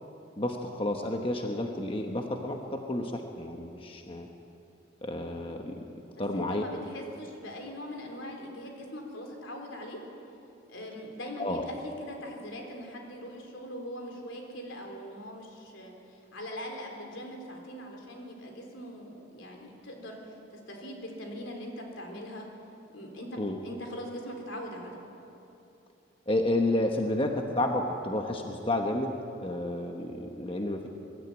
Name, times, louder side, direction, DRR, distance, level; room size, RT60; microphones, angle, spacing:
voice 1, 0.4-4.3 5.0-5.8 6.2-6.6 11.4-11.6 23.4-23.6 26.3-29.1 29.4-30.9, left 1 dB, 30° left, 3 dB, 1.1 m, -30 dB
voice 2, 6.3-10.0 10.7-20.4 20.7-22.5 22.9-25.0, equal, 85° left, 1 dB, 3.7 m, -41 dB
23.0 x 13.0 x 9.0 m, 2.8 s
head